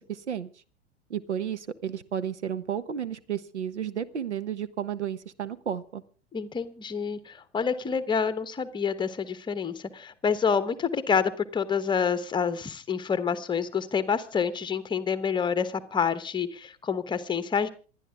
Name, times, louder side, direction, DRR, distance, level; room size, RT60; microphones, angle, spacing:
voice 1, 0.1-0.5 1.1-6.0, right 9 dB, 70° right, 14 dB, 1.2 m, -32 dB
voice 2, 6.3-17.7, left 6 dB, 15° left, 13 dB, 1.1 m, -28 dB
27.0 x 10.5 x 3.6 m, 0.38 s
figure-of-eight pair, 90°, 35 cm